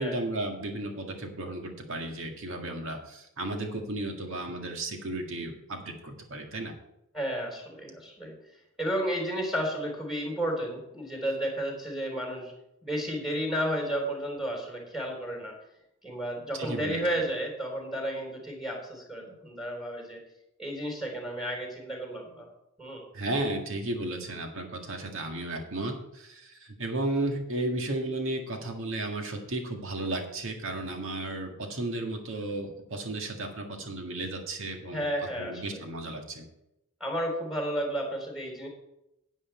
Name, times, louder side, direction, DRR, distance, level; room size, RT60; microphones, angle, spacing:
voice 1, 0.0-6.8 16.5-17.0 23.1-35.1 35.4-36.5, right 2 dB, 65° right, 3 dB, 1.9 m, -34 dB
voice 2, 7.1-8.3 8.8-12.5 12.8-15.5 16.0-20.2 20.6-22.5 22.8-23.0 34.9-35.8 37.0-38.7, right 1 dB, ahead, 0 dB, 3.7 m, -32 dB
10.0 x 9.4 x 4.4 m, 0.84 s
head